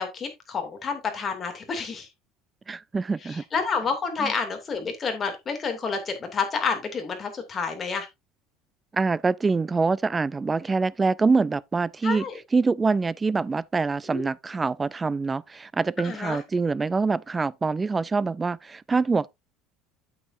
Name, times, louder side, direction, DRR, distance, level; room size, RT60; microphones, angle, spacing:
voice 1, 0.0-2.1 3.2-8.1 12.0-12.3 14.1-14.3 16.0-16.4, left 5 dB, 30° left, 2.7 m, -29 dB
voice 2, 2.7-3.4 4.2-4.3 8.9-12.2 12.5-19.3, right 4 dB, 15° right, 0.4 m, -25 dB
8.7 x 8.3 x 2.6 m
cardioid pair, 135°, 0 cm